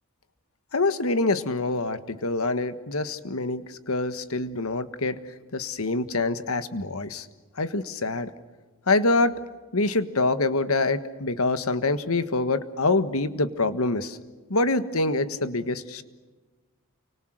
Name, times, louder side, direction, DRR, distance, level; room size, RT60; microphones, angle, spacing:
voice 1, 0.7-5.2 5.5-7.2 7.6-8.3 8.9-9.4 9.7-14.2 14.5-16.0, left 2 dB, 80° left, 12 dB, 1.5 m, -25 dB
29.5 x 25.0 x 6.5 m, 1.3 s
head